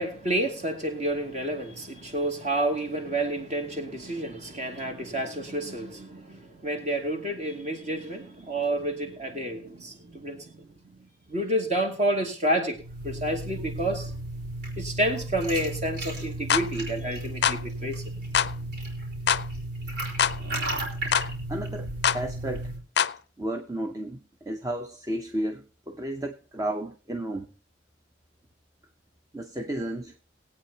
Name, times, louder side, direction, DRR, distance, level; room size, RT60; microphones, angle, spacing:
voice 1, 0.0-10.7 11.3-12.8 13.0-14.1 14.8-18.1 18.4-18.5, right 1 dB, 35° right, 2.3 m, -29 dB
sound 1, 12.8-22.8, right 1 dB, 55° right, 4.1 m, -34 dB
sound 2, 16.5-16.7 17.4-17.6 18.3-18.5 19.3-19.5 20.2-20.4 21.1-21.3 22.0-22.2 23.0-23.2, left 8 dB, 55° left, 0.4 m, -23 dB
voice 2, 21.5-21.9 22.1-22.7 23.4-27.5 29.3-30.1, right 1 dB, 15° right, 0.7 m, -33 dB
21.0 x 8.6 x 2.8 m
head